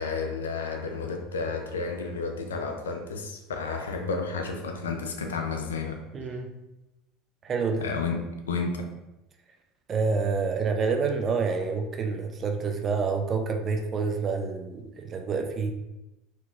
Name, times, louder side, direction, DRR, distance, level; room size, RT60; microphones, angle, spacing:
voice 1, 0.0-6.0 7.8-8.9, left 4 dB, 90° left, 4 dB, 0.4 m, -31 dB
voice 2, 6.1-6.5 7.4-7.9 9.9-15.7, right 4 dB, 35° right, 5 dB, 0.5 m, -28 dB
3.6 x 2.9 x 2.4 m, 0.97 s
hypercardioid pair, 85°, 0 cm